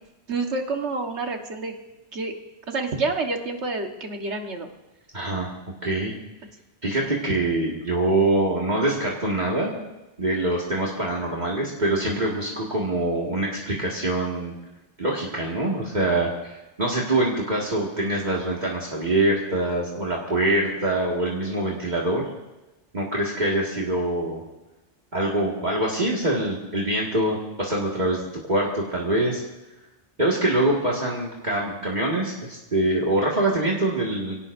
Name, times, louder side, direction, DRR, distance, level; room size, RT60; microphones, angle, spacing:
voice 1, 0.3-1.7 2.1-2.3 2.7-4.7, right 3 dB, 80° right, 3 dB, 1.8 m, -28 dB
voice 2, 5.1-5.5 5.8-6.1 6.8-9.7 10.2-14.5 15.0-22.3 22.9-24.4 25.1-29.4 30.2-34.4, right 1 dB, 40° right, -3 dB, 2.1 m, -24 dB
25.5 x 17.0 x 2.7 m, 1.0 s
omnidirectional pair, 1.1 m